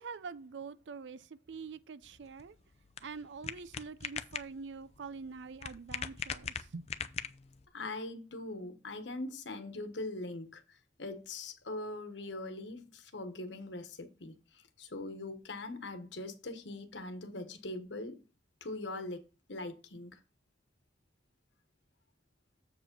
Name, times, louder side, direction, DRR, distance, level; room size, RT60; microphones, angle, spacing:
voice 1, 0.0-2.6 3.0-6.9, right 5 dB, 85° right, 0.5 m, -45 dB
sound 1, 2.0-7.7, left 7 dB, 35° left, 0.5 m, -42 dB
voice 2, 7.7-18.2 18.6-19.2 19.5-20.2, left 2 dB, 85° left, 1.2 m, -42 dB
7.6 x 4.9 x 5.3 m
head